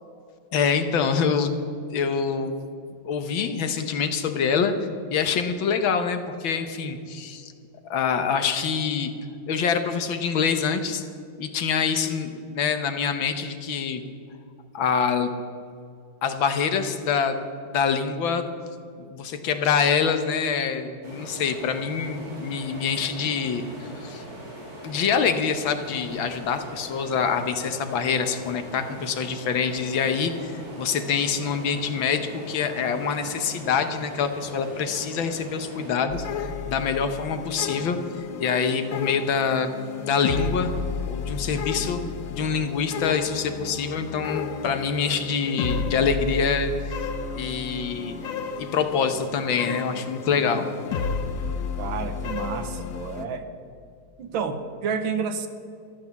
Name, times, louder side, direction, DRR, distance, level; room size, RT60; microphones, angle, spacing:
voice 1, 0.5-1.5 1.9-2.6 3.0-4.7 5.1-7.5 7.9-9.1 9.5-11.0 11.4-14.0 14.7-15.3 16.2-18.4 19.0-24.2 24.8-39.7 40.0-40.7 41.1-42.0 42.3-47.1 47.4-48.2 48.6-50.7, left 6 dB, 70° left, 8 dB, 1.8 m, -25 dB
sound 1, 21.0-35.9, equal, 35° right, 4.5 m, -41 dB
sound 2, 36.1-53.3, left 6 dB, 55° left, 1.0 m, -32 dB
voice 2, 51.8-53.5 54.2-55.5, right 6 dB, 75° right, 9 dB, 1.8 m, -30 dB
13.5 x 12.0 x 7.1 m, 2.3 s
omnidirectional pair, 2.2 m